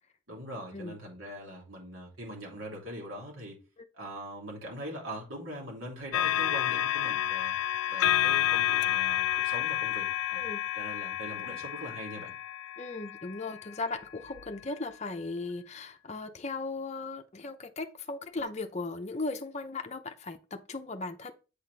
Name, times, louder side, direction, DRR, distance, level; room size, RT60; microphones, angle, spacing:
voice 1, 0.3-3.6 3.9-7.5 7.9-10.4 10.7-12.3, equal, 75° right, 2.9 m, -42 dB
sound 1, 6.1-13.6 14.4-14.5, left 13 dB, 85° left, 0.4 m, -30 dB
voice 2, 12.8-21.3, left 3 dB, 35° left, 0.6 m, -37 dB
8.2 x 4.2 x 3.3 m
head